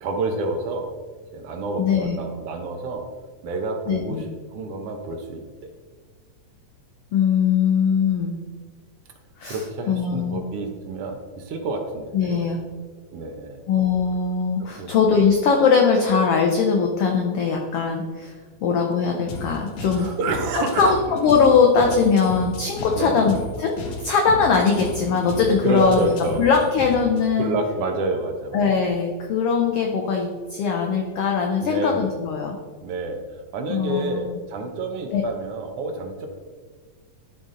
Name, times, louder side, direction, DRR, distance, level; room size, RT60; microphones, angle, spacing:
voice 1, 0.0-0.8 1.3-3.0 3.4-5.4 9.5-12.3 13.1-13.6 14.8-14.9 19.9-20.9 22.9-23.3 25.6-26.4 27.4-28.6 31.6-32.2 32.8-36.3, right 2 dB, 70° right, 4 dB, 1.5 m, -28 dB
voice 2, 1.8-2.2 3.9-4.2 7.1-8.3 9.4-9.6 9.9-10.4 12.1-12.6 13.7-18.4 18.6-20.1 20.8-23.7 24.0-27.5 28.5-32.6 33.7-34.4 35.1-35.2, left 5 dB, 90° left, 2 dB, 1.3 m, -21 dB
sound 1, 19.3-27.3, left 2 dB, 70° left, 2.2 m, -35 dB
12.0 x 4.0 x 3.8 m, 1.5 s
omnidirectional pair, 3.5 m